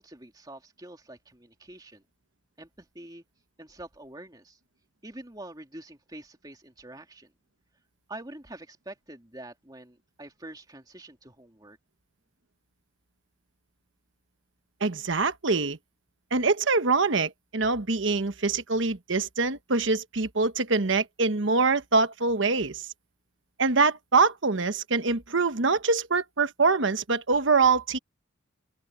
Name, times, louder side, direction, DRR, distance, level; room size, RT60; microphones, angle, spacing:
voice 1, 0.0-2.0 2.6-3.2 3.6-4.6 5.0-7.3 8.1-11.8, right 1 dB, 20° right, 2.9 m, -45 dB
voice 2, 14.8-15.8 16.3-22.8 23.6-28.0, right 4 dB, 70° right, 1.2 m, -24 dB
open air
head